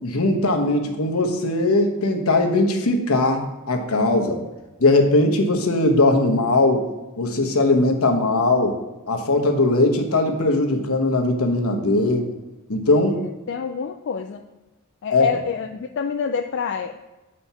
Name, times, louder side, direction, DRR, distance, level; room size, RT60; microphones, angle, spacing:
voice 1, 0.0-4.4 4.8-6.8 7.2-8.7 9.1-12.3 12.7-13.2 15.1-15.3, left 2 dB, 75° left, 4 dB, 1.1 m, -19 dB
voice 2, 13.5-14.4 15.0-17.0, left 6 dB, 55° left, 4 dB, 0.3 m, -27 dB
7.7 x 4.3 x 5.6 m, 1.1 s
head